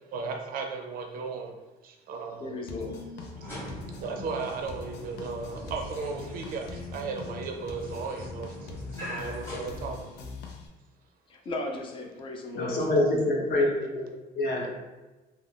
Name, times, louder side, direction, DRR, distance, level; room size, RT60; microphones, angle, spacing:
voice 1, 0.1-1.5 1.8-2.5 3.4-3.6 4.0-10.1 14.6-14.7, right 4 dB, 60° right, 2 dB, 0.4 m, -36 dB
voice 2, 2.4-3.0 11.3-12.8, left 2 dB, 30° left, 2 dB, 0.4 m, -36 dB
sound 1, 2.7-10.7, left 3 dB, 90° left, 0.5 m, -42 dB
sound 2, 3.3-10.5, equal, 15° left, 0.8 m, -43 dB
voice 3, 12.5-14.7, left 1 dB, 60° left, -2 dB, 0.8 m, -26 dB
2.3 x 2.2 x 3.4 m, 1.1 s
cardioid pair, 180°, 17 cm